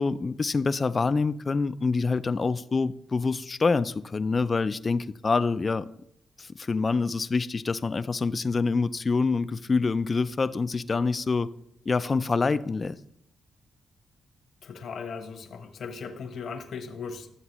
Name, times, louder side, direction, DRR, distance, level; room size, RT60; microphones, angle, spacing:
voice 1, 0.0-5.9 6.4-11.5 11.9-12.9, left 4 dB, 35° left, 0.3 m, -26 dB
voice 2, 14.6-17.3, left 5 dB, 65° left, 0.9 m, -38 dB
11.0 x 7.2 x 3.0 m
cardioid pair, 75°, 0 cm